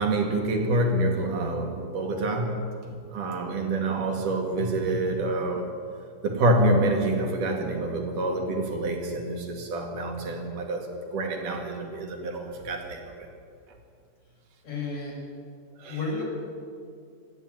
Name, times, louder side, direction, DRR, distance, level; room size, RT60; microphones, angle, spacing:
voice 1, 0.0-5.7 6.2-10.9 11.1-13.3 15.8-16.0, right 2 dB, 50° right, 2 dB, 3.3 m, -27 dB
voice 2, 14.6-15.2 15.9-16.2, left 3 dB, 35° left, -1 dB, 5.9 m, -31 dB
26.5 x 12.0 x 9.2 m, 2.4 s
omnidirectional pair, 5.7 m